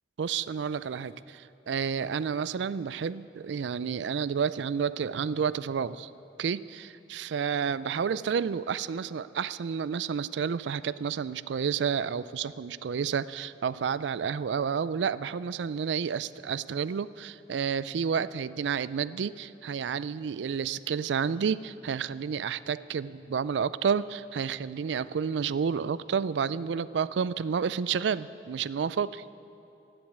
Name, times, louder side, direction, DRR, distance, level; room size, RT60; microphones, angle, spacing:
voice 1, 0.2-6.1 6.4-29.2, right 6 dB, 85° right, 17 dB, 0.4 m, -30 dB
16.0 x 7.8 x 9.5 m, 2.8 s
head